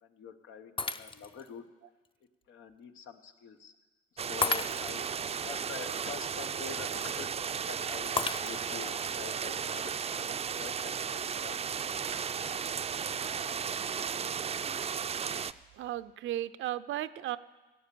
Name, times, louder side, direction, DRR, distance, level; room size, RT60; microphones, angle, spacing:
voice 1, 0.0-1.6 2.5-3.7 4.1-5.1 5.4-11.7 12.0-12.2 12.5-13.6 14.2-14.6, left 7 dB, 90° left, 7 dB, 1.1 m, -47 dB
Shatter, 0.8-1.5 2.0-2.1 4.4-5.1 8.2-8.9, left 4 dB, 25° left, 0.5 m, -33 dB
sound 1, 4.2-15.5, right 7 dB, 30° right, 0.4 m, -35 dB
voice 2, 15.8-17.4, right 13 dB, 80° right, 14 dB, 0.6 m, -35 dB
16.5 x 9.0 x 6.9 m, 1.2 s
cardioid pair, 90°, 20 cm